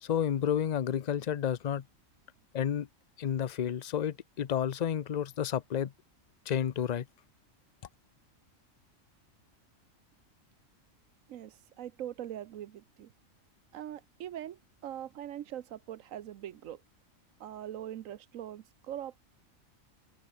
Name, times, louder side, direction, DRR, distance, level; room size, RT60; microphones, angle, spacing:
voice 1, 0.0-1.8 2.5-2.9 3.2-5.9 6.5-7.1, left 9 dB, 45° left, 0.5 m, -31 dB
voice 2, 11.3-13.1 13.7-16.8 17.4-19.2, right 11 dB, 75° right, 1.1 m, -42 dB
omnidirectional pair, 1.4 m